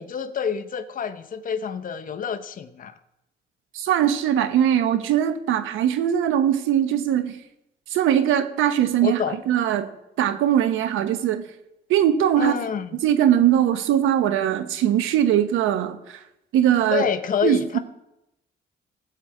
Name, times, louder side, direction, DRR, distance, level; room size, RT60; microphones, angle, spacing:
voice 1, 0.0-2.9 9.0-9.4 12.4-13.0 16.9-17.8, left 7 dB, 45° left, 7 dB, 0.9 m, -27 dB
voice 2, 3.7-7.4 7.9-9.2 9.5-9.9 10.2-11.4 11.9-12.5 13.0-16.2 16.5-17.1 17.4-17.8, right 10 dB, 90° right, 10 dB, 1.1 m, -21 dB
17.5 x 7.8 x 4.9 m, 0.89 s
cardioid pair, 90°, 20 cm